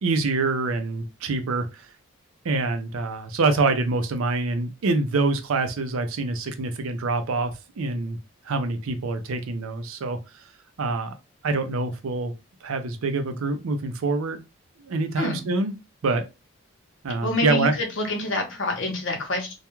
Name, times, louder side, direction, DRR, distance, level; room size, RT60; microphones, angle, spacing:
voice 1, 0.0-1.9 2.4-8.2 8.5-10.4 10.8-11.1 11.4-12.3 12.6-14.4 14.8-15.7 16.0-16.2 17.0-17.7, right 3 dB, 85° right, 0.5 m, -25 dB
voice 2, 15.2-15.5 17.2-19.5, left 2 dB, 65° left, 0.7 m, -27 dB
2.3 x 2.2 x 2.9 m
head